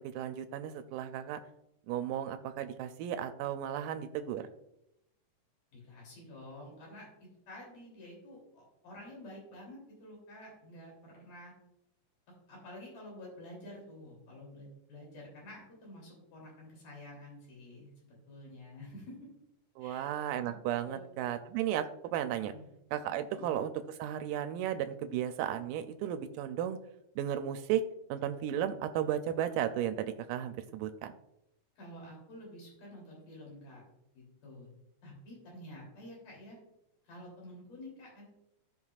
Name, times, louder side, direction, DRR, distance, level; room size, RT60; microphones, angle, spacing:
voice 1, 0.1-1.4 1.9-4.5 19.8-22.5 22.9-26.8 27.2-27.8 28.1-31.1, right 10 dB, 90° right, 8 dB, 2.2 m, -34 dB
voice 2, 5.7-7.1 7.5-11.5 12.5-19.2 19.8-20.1 20.4-20.5 20.8-21.2 22.5-22.7 23.3-23.5 31.8-33.8 34.1-34.7 35.0-36.6 37.0-38.3, left 1 dB, 75° left, -3 dB, 4.6 m, -50 dB
15.0 x 5.6 x 2.4 m, 0.84 s
omnidirectional pair, 3.7 m